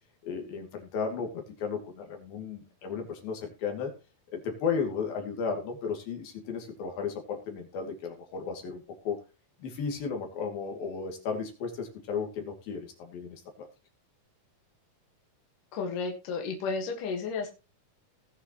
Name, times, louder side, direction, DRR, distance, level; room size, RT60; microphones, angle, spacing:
voice 1, 0.2-3.9 4.3-9.2 9.6-13.7, left 5 dB, 80° left, 3 dB, 4.4 m, -34 dB
voice 2, 15.7-17.5, left 4 dB, 65° left, 3 dB, 3.2 m, -32 dB
19.0 x 7.1 x 3.1 m, 0.29 s
omnidirectional pair, 4.1 m